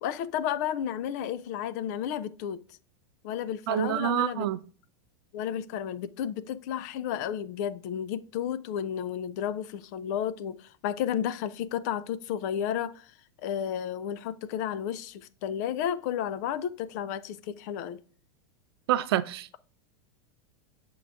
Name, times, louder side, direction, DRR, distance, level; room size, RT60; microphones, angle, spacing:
voice 1, 0.0-2.6 3.2-4.5 5.3-13.1 13.4-18.0, left 9 dB, 40° left, 0.3 m, -32 dB
voice 2, 3.7-4.6 18.9-19.6, right 13 dB, 65° right, 0.4 m, -27 dB
7.3 x 3.8 x 3.4 m
supercardioid pair, 165°, 14 cm